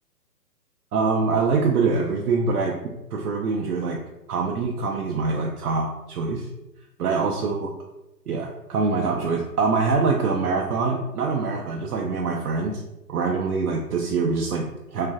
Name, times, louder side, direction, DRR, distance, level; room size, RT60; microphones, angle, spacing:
voice 1, 0.9-2.8 3.1-4.0 4.3-6.5 7.0-7.7 8.3-12.8 13.1-15.1, right 4 dB, 70° right, 0 dB, 0.5 m, -24 dB
3.1 x 2.5 x 2.2 m, 0.93 s
figure-of-eight pair, 140°, 48 cm